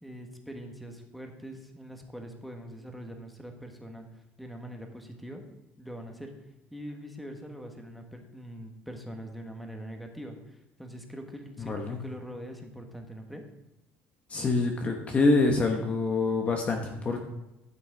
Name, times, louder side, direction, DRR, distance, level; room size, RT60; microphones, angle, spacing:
voice 1, 0.0-4.0 4.4-5.4 5.8-6.3 6.7-13.4, equal, ahead, 3 dB, 1.4 m, -43 dB
voice 2, 11.7-12.0 14.3-17.2, left 3 dB, 25° left, 3 dB, 1.0 m, -26 dB
12.5 x 6.1 x 4.7 m, 0.96 s
cardioid pair, 140°, 5 cm